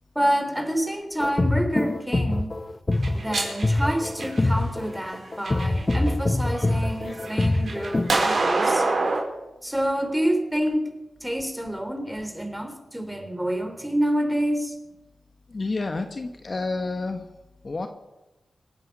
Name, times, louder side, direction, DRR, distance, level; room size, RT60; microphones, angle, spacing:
voice 1, 0.2-2.5 3.1-8.9 9.6-10.8 11.2-14.8, equal, 5° right, 6 dB, 3.6 m, -27 dB
sound 1, 1.2-8.2, left 2 dB, 30° left, 1.1 m, -24 dB
sound 2, 2.9-4.7 5.3-6.1 6.5-9.2, right 3 dB, 60° right, 4.9 m, -26 dB
voice 2, 15.5-17.3 17.6-17.9, left 3 dB, 50° left, 6 dB, 1.4 m, -29 dB
27.0 x 9.1 x 5.5 m, 1.0 s
cardioid pair, 50°, 0 cm